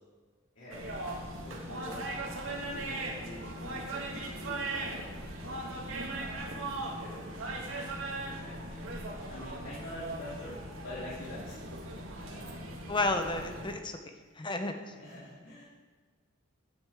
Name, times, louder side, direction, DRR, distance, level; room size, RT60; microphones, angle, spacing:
voice 1, 0.5-0.9 1.4-5.7 6.2-7.3 8.2-8.8 9.3-11.6 11.9-12.9 14.9-15.6, left 1 dB, 65° left, -10 dB, 3.0 m, -47 dB
sound 1, 0.7-13.7, right 2 dB, 75° right, 1.9 m, -39 dB
voice 2, 12.9-14.0 14.4-14.9, left 2 dB, 25° left, 6 dB, 0.9 m, -31 dB
15.5 x 9.0 x 3.6 m, 1.4 s
head